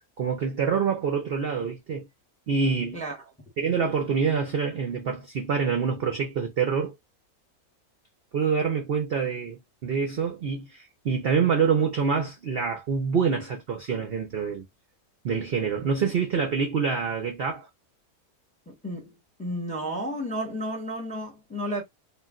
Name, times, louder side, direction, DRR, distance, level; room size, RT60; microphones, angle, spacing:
voice 1, 0.2-2.1 2.5-3.0 3.6-6.9 8.3-14.7 15.2-17.7, right 6 dB, 60° right, 0.6 m, -26 dB
voice 2, 18.7-19.1 19.4-21.8, equal, 5° left, 0.8 m, -32 dB
2.4 x 2.1 x 3.6 m
omnidirectional pair, 1.6 m